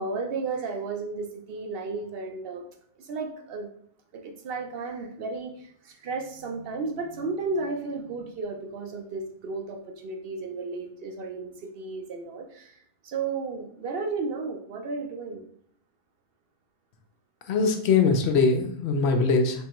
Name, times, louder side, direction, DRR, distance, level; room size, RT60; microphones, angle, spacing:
voice 1, 0.0-2.6 3.0-3.7 4.1-15.4, right 4 dB, 60° right, 4 dB, 0.7 m, -33 dB
voice 2, 17.5-19.6, left 4 dB, 65° left, 5 dB, 0.8 m, -22 dB
3.5 x 3.3 x 2.9 m, 0.66 s
omnidirectional pair, 1.3 m